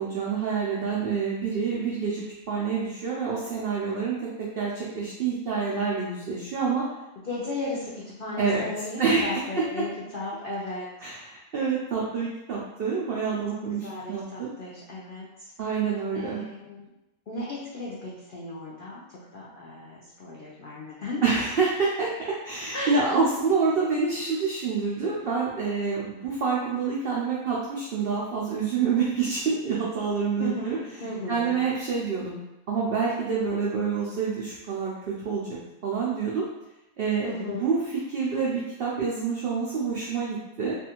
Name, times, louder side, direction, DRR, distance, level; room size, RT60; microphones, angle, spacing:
voice 1, 0.0-6.9 8.4-8.6 9.0-9.9 11.0-14.5 15.6-16.4 21.2-22.1 22.4-30.8 31.3-32.4 32.7-34.9 35.2-35.5 35.8-36.5 37.0-40.8, right 5 dB, 85° right, -5 dB, 0.5 m, -27 dB
voice 2, 7.2-11.2 13.7-15.3 16.1-16.9 17.3-21.5 22.7-23.1 30.4-31.6 37.2-37.7, left 2 dB, 85° left, -6 dB, 0.4 m, -35 dB
2.6 x 2.4 x 2.8 m, 0.92 s
omnidirectional pair, 1.5 m